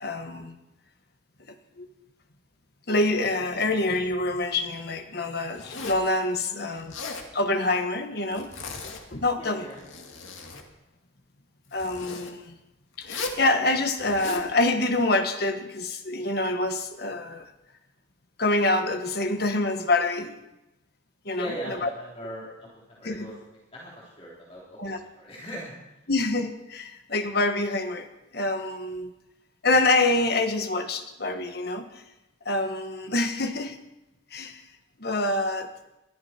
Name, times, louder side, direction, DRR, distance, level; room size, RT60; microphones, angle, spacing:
voice 1, 0.0-0.6 1.8-1.9 2.9-6.9 7.3-8.5 9.1-9.6 11.7-12.6 13.0-17.5 18.4-20.4 21.2-21.9 23.0-23.3 24.8-25.0 26.1-28.1 28.3-29.1 29.6-31.9 32.4-33.8 34.3-34.6 35.0-35.7, left 2 dB, 55° left, 6 dB, 1.4 m, -26 dB
Zipper (clothing), 5.5-6.1 6.8-7.3 8.3-9.1 9.7-10.7 11.7-12.3 13.0-13.4 14.0-14.5, left 3 dB, 85° left, 2.1 m, -37 dB
voice 2, 6.4-6.8 9.4-9.8 21.3-26.0, equal, 30° left, -5 dB, 3.4 m, -40 dB
22.0 x 13.5 x 4.4 m, 0.94 s
head